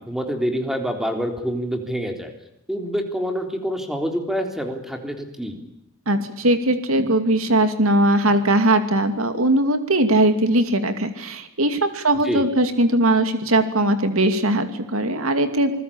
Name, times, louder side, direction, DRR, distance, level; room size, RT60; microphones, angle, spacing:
voice 1, 0.0-2.3 2.7-5.6 12.2-12.4, equal, ahead, 5 dB, 3.7 m, -26 dB
voice 2, 6.1-15.8, right 1 dB, 75° right, 9 dB, 2.6 m, -20 dB
27.0 x 20.5 x 8.7 m, 0.80 s
head